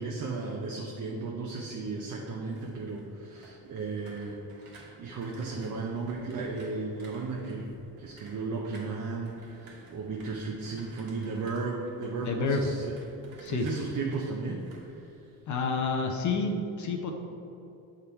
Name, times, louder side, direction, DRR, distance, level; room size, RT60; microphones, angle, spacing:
voice 1, 0.0-13.0 13.3-14.6 14.9-15.1 16.4-16.6, right 3 dB, 55° right, -1 dB, 0.8 m, -35 dB
sound 1, 1.8-15.8 16.1-16.5, right 2 dB, 70° right, 1.5 m, -54 dB
voice 2, 12.2-12.6 13.4-13.7 15.5-17.1, left 4 dB, 50° left, 3 dB, 0.7 m, -29 dB
6.7 x 3.7 x 4.4 m, 2.8 s
supercardioid pair, 85°, 38 cm